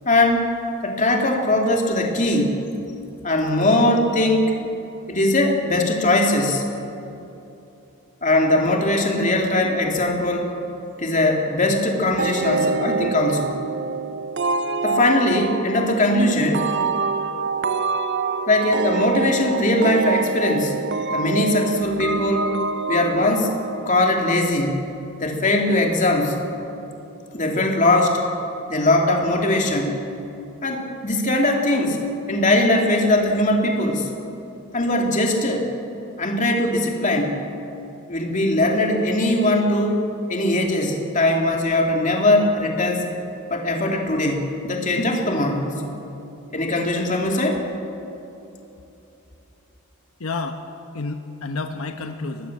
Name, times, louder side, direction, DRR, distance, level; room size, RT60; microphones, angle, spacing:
voice 1, 0.0-0.5 0.8-2.6 3.2-4.6 5.1-6.6 8.2-10.5 11.0-13.5 14.8-16.7 18.5-20.7 21.1-22.5 22.9-23.5 23.8-24.8 25.2-26.4 27.3-28.2 28.7-30.0 30.6-32.0 32.3-34.1 34.7-35.7 36.2-37.4 38.1-43.1 43.5-45.9 46.5-47.6, left 1 dB, 35° left, 1 dB, 2.8 m, -20 dB
sound 1, 12.2-24.6, right 4 dB, 50° right, 0.8 m, -26 dB
voice 2, 50.2-50.7 50.9-52.5, left 3 dB, 75° left, 5 dB, 1.1 m, -30 dB
23.5 x 19.0 x 7.5 m, 2.9 s
head